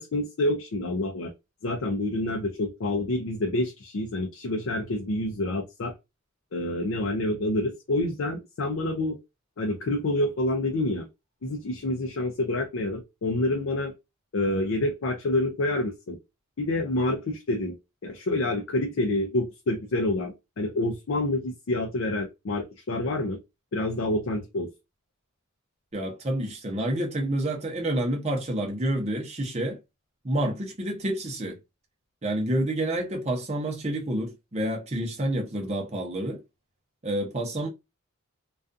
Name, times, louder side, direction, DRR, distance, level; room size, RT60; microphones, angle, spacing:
voice 1, 0.0-1.3 1.6-5.9 6.5-9.2 9.6-11.1 11.4-13.9 14.3-16.2 16.6-17.8 18.0-23.4 23.7-24.7, left 1 dB, 65° left, 0.5 m, -27 dB
voice 2, 25.9-29.8 30.2-31.6 32.2-36.4 37.0-37.7, right 1 dB, 30° right, 0.7 m, -28 dB
2.4 x 2.3 x 2.5 m
head